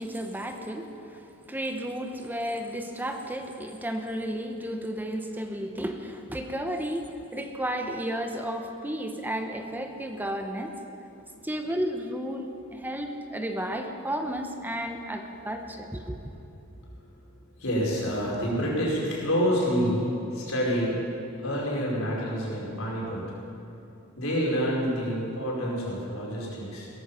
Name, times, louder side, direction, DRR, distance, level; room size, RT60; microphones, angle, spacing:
voice 1, 0.0-10.7 11.4-16.2, equal, 10° right, 5 dB, 0.9 m, -33 dB
voice 2, 17.6-20.9 21.4-23.2 24.2-26.9, equal, 75° left, -4 dB, 4.7 m, -27 dB
17.0 x 14.5 x 5.7 m, 2.8 s
head